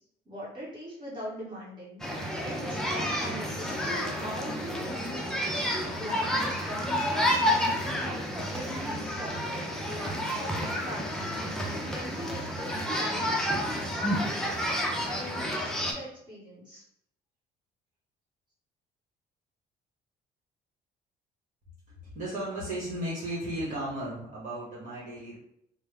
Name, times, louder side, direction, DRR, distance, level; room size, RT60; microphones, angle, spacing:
voice 1, 0.2-5.4 5.9-7.9 8.5-11.1 11.7-14.5 15.0-16.8, equal, 25° right, -7 dB, 1.5 m, -41 dB
sound 1, 2.0-15.9, equal, 5° left, 0.5 m, -30 dB
voice 2, 22.0-25.4, right 1 dB, 50° right, -6 dB, 1.2 m, -35 dB
3.3 x 2.1 x 3.3 m, 0.74 s
cardioid pair, 110°, 17 cm